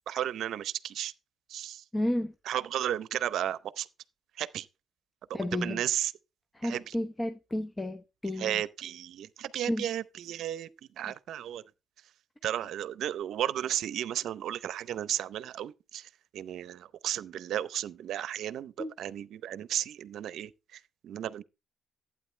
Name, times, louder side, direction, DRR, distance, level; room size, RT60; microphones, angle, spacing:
voice 1, 0.1-1.1 1.5-1.8 2.5-3.9 4.4-4.7 5.3-6.1 6.6-6.9 8.4-10.7 11.0-11.6 12.4-18.7 19.0-21.4, right 11 dB, 75° right, 0.6 m, -34 dB
voice 2, 1.9-2.3 5.3-5.8 6.6-8.6 9.7-9.9 18.8-18.9, left 1 dB, 15° left, 0.7 m, -32 dB
12.0 x 8.8 x 3.2 m
cardioid pair, 100°, 0 cm